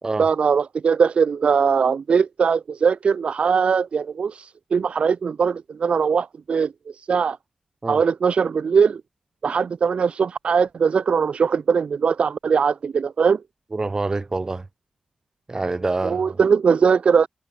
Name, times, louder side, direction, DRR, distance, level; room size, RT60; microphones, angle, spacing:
voice 1, 0.2-6.7 7.1-7.4 7.9-9.0 9.4-13.4 16.0-17.3, right 6 dB, 70° right, 0.4 m, -20 dB
voice 2, 13.7-14.7 15.5-16.4, right 3 dB, 35° right, 2.8 m, -26 dB
wide cardioid pair, 120°, 2 cm